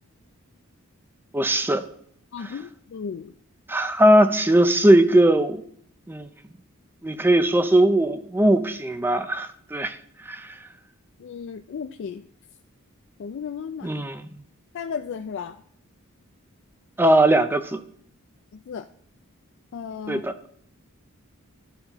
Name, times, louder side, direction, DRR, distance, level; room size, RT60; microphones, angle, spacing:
voice 1, 1.3-1.8 3.7-5.6 6.1-6.3 7.0-10.0 10.3-10.5 13.8-14.2 17.0-17.8 20.1-20.3, right 1 dB, 10° right, 0.4 m, -19 dB
voice 2, 2.3-3.3 11.2-12.3 13.2-14.0 14.7-15.6 18.5-18.9 19.7-20.2, left 6 dB, 55° left, 0.3 m, -34 dB
13.0 x 5.5 x 2.9 m
head